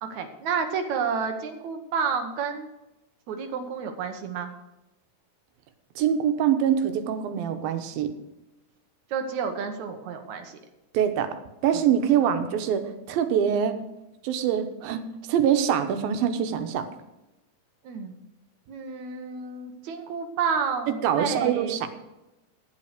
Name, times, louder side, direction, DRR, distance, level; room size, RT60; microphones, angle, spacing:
voice 1, 0.0-2.7 3.3-4.5 9.1-10.6 17.8-18.1 18.7-21.8, right 6 dB, 65° right, 6 dB, 2.1 m, -30 dB
voice 2, 6.0-8.1 10.9-11.4 11.6-13.7 14.2-15.0 15.3-16.9 21.0-21.9, right 9 dB, 85° right, 7 dB, 2.8 m, -24 dB
11.5 x 7.5 x 6.5 m, 0.98 s
omnidirectional pair, 4.1 m